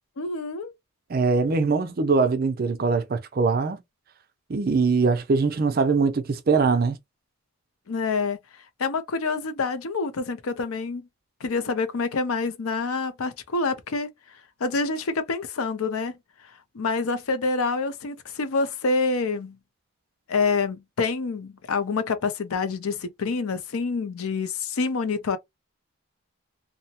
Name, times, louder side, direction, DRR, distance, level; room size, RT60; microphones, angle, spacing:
voice 1, 0.2-0.7 7.9-8.4 8.8-11.1 11.4-14.1 14.6-16.2 16.7-19.6 20.3-25.4, left 4 dB, 80° left, 0.5 m, -27 dB
voice 2, 1.1-3.8 4.5-7.0, right 4 dB, 45° right, 0.4 m, -22 dB
2.7 x 2.1 x 2.8 m
head